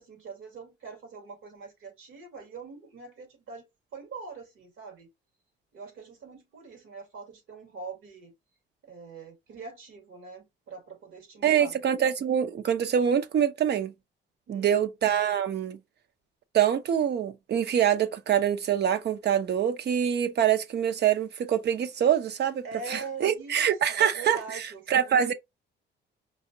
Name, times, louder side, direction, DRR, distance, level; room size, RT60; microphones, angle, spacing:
voice 1, 0.0-3.7 3.9-5.1 5.7-8.3 8.8-11.8 14.5-14.9 22.6-25.2, right 4 dB, 85° right, 2.2 m, -43 dB
voice 2, 11.4-13.9 14.5-15.8 16.5-24.6 24.9-25.3, right 9 dB, 55° right, 0.7 m, -25 dB
4.8 x 2.9 x 2.7 m
cardioid pair, 90°, 20 cm